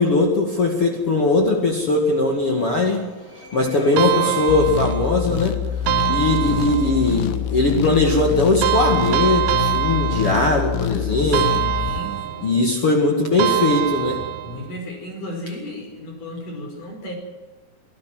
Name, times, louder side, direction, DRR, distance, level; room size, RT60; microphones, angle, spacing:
voice 1, 0.0-11.5 11.8-12.0 12.4-14.2, left 2 dB, 45° left, 2 dB, 2.8 m, -20 dB
voice 2, 3.7-4.6 11.2-12.2 14.4-17.1, left 1 dB, 65° left, 3 dB, 6.6 m, -33 dB
sound 1, 4.0-5.3 5.9-7.2 8.6-10.8 11.3-12.6 13.4-14.7, right 14 dB, 70° right, 1.8 m, -24 dB
sound 2, 4.5-12.0, left 9 dB, 90° left, 2.7 m, -26 dB
25.0 x 15.0 x 7.7 m, 1.2 s
omnidirectional pair, 4.0 m